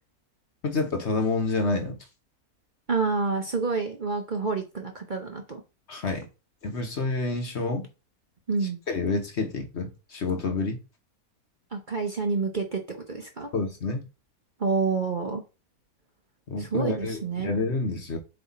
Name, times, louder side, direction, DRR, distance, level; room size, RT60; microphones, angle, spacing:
voice 1, 0.6-2.0 5.9-6.3 6.6-7.9 8.9-10.8 13.5-14.1 16.5-18.2, left 3 dB, 50° left, 1.2 m, -28 dB
voice 2, 2.9-5.6 8.5-8.8 11.7-12.8 13.1-13.5 14.6-15.4 16.6-17.5, right 4 dB, 35° right, 0.9 m, -28 dB
7.6 x 3.4 x 4.2 m
omnidirectional pair, 1.6 m